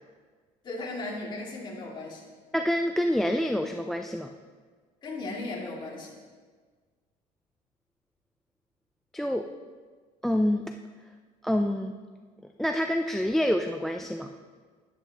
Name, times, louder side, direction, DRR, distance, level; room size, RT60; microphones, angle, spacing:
voice 1, 0.6-2.3 5.0-6.2, left 2 dB, 30° left, -4 dB, 2.4 m, -36 dB
voice 2, 2.5-4.3 9.1-9.5 10.2-10.6 11.4-12.0 12.6-14.3, equal, ahead, 6 dB, 0.3 m, -27 dB
14.0 x 10.0 x 2.9 m, 1.5 s
cardioid pair, 145°, 16 cm